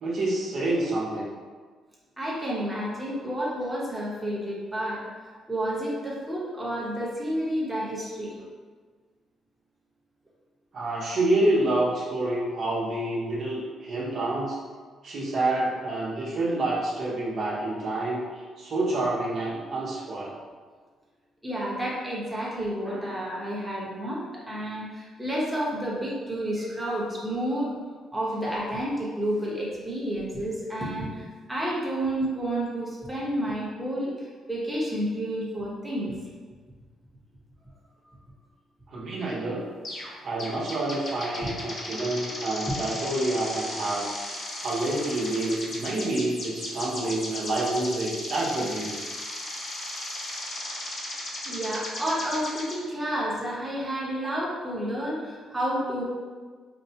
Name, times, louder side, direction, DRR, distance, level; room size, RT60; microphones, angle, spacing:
voice 1, 0.0-1.3 10.7-14.6 15.0-18.2 18.6-20.3 38.9-39.7 40.2-44.1 44.6-48.9, right 2 dB, 60° right, -6 dB, 0.9 m, -28 dB
voice 2, 2.2-5.0 5.5-8.4 21.4-27.8 28.1-36.1 51.5-56.0, right 1 dB, 10° right, -6 dB, 0.9 m, -30 dB
sound 1, 39.8-40.1 40.4-52.8, left 1 dB, 45° left, 0.8 m, -36 dB
4.5 x 2.1 x 2.8 m, 1.5 s
cardioid pair, 90°, 0 cm